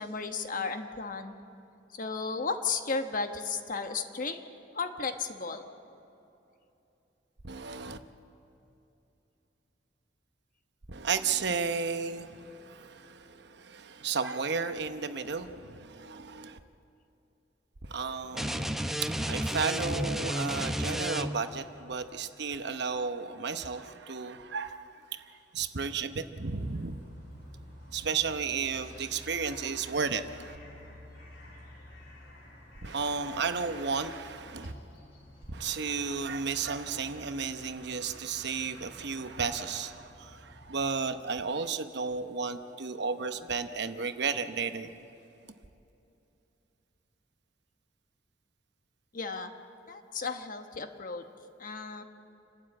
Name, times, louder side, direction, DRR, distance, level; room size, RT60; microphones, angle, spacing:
voice 1, 0.0-1.4 1.9-4.4 4.7-5.6 49.1-49.5 49.9-51.2 51.6-52.0, left 4 dB, 45° left, 6 dB, 1.2 m, -34 dB
voice 2, 7.4-8.0 10.9-16.6 17.8-24.8 25.1-25.3 25.5-27.0 27.9-30.6 32.8-34.7 35.5-44.9, right 5 dB, 65° right, 9 dB, 0.9 m, -33 dB
sound 1, 18.3-21.6, equal, ahead, 0.7 m, -32 dB
sound 2, 26.4-40.9, left 1 dB, 65° left, 4.9 m, -52 dB
29.0 x 12.5 x 8.6 m, 2.9 s
head